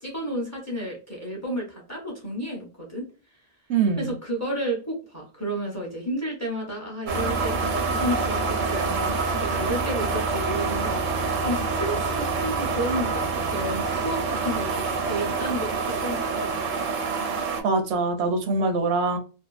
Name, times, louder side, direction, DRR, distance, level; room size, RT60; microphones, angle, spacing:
voice 1, 0.0-3.0 4.0-11.1 11.4-14.7 15.1-16.8, equal, 20° left, -2 dB, 0.7 m, -31 dB
voice 2, 3.7-4.1 17.6-19.2, right 4 dB, 85° right, 5 dB, 0.9 m, -23 dB
sound 1, 7.1-17.6, right 4 dB, 55° right, 0.6 m, -26 dB
2.6 x 2.3 x 2.3 m, 0.35 s
omnidirectional pair, 1.1 m